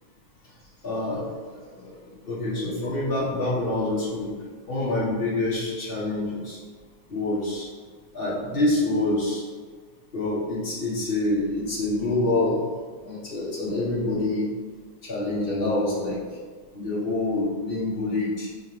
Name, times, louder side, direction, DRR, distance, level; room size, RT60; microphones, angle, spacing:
voice 1, 0.8-6.6 7.1-7.7 8.1-9.4 10.1-12.7 13.0-14.5 15.0-16.4 16.7-18.6, left 2 dB, 85° left, -8 dB, 0.5 m, -27 dB
5.7 x 3.1 x 5.6 m, 1.5 s
omnidirectional pair, 3.4 m